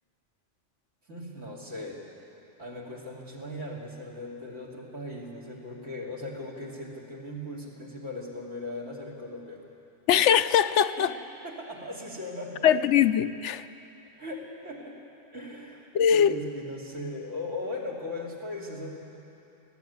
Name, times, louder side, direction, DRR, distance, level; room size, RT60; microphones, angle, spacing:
voice 1, 1.1-2.0 2.6-9.6 11.0-11.1 11.4-12.8 14.2-15.0 15.3-19.0, left 1 dB, 85° right, -1 dB, 3.4 m, -38 dB
voice 2, 10.1-11.1 12.6-13.6 15.9-16.3, left 9 dB, 75° left, 11 dB, 0.9 m, -21 dB
20.0 x 14.5 x 9.5 m, 2.9 s
omnidirectional pair, 1.2 m